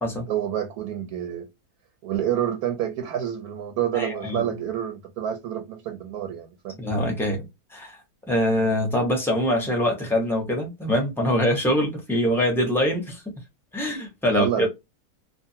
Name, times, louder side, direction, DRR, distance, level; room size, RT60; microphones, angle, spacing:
voice 1, 0.3-1.5 2.0-7.0 14.3-14.7, right 10 dB, 80° right, 1.1 m, -28 dB
voice 2, 3.9-4.4 6.8-7.4 7.7-8.0 8.3-13.2 13.7-14.7, equal, 5° left, 0.4 m, -24 dB
2.6 x 2.4 x 2.6 m
omnidirectional pair, 1.6 m